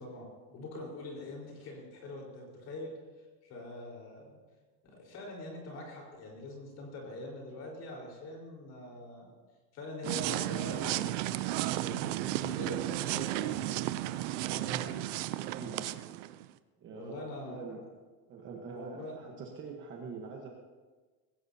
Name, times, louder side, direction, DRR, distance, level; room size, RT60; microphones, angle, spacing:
voice 1, 0.0-2.9 3.4-4.2 4.8-9.3 9.7-11.0 11.5-13.7 16.9-17.8 18.7-19.3, left 1 dB, 30° left, -1 dB, 4.4 m, -44 dB
sound 1, 10.0-16.5, right 15 dB, 50° right, 0.6 m, -33 dB
voice 2, 14.4-15.0 15.5-15.8 16.8-17.8 18.3-20.5, right 5 dB, 25° right, 0 dB, 1.2 m, -44 dB
20.5 x 17.0 x 2.8 m, 1.3 s
supercardioid pair, 175°, 49 cm